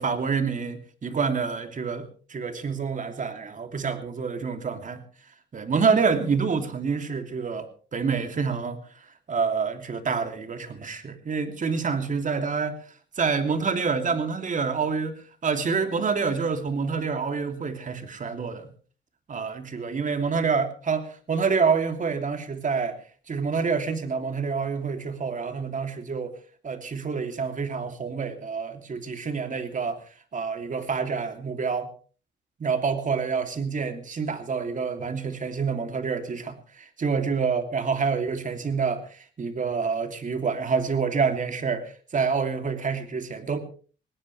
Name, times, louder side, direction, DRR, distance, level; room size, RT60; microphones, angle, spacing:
voice 1, 0.0-5.0 5.5-8.8 9.3-12.8 13.2-18.7 19.3-23.0 23.3-26.3 26.6-30.0 30.3-31.9 32.6-43.6, right 5 dB, 40° right, 7 dB, 3.0 m, -27 dB
20.5 x 18.0 x 3.4 m, 0.40 s
cardioid pair, 90°, 20 cm